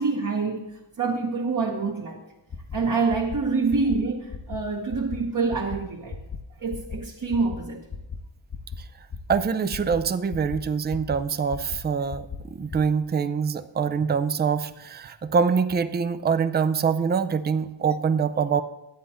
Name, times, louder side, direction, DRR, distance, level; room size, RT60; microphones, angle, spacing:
voice 1, 0.0-2.2 2.7-6.2 6.6-7.8, right 4 dB, 40° right, -1 dB, 1.0 m, -26 dB
sound 1, 2.5-2.8 3.1-3.4 3.7-4.0 4.3-4.6 4.9-5.2 5.5-5.8 6.1-6.4 6.7-7.0 7.3-7.6 7.9-8.2 8.5-8.8 9.1-9.4 9.7-10.0 10.3-10.6 10.9-11.2 11.5-11.8 12.1-12.4 12.7-12.8, left 6 dB, 30° left, 0.8 m, -35 dB
voice 2, 9.3-18.6, right 6 dB, 25° right, 11 dB, 0.4 m, -24 dB
11.5 x 8.8 x 4.2 m, 0.91 s
wide cardioid pair, 145°, 48 cm